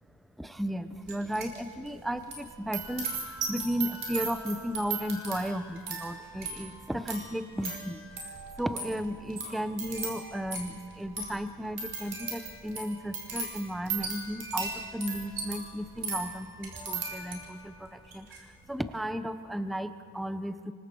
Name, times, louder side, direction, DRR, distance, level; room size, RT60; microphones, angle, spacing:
voice 1, 0.4-20.7, equal, ahead, 10 dB, 0.7 m, -35 dB
sound 1, 1.1-1.6 1.9-17.6 18.0-18.4, right 4 dB, 70° right, 5.4 m, -38 dB
28.0 x 24.5 x 4.6 m, 2.2 s
wide cardioid pair, 140°, 38 cm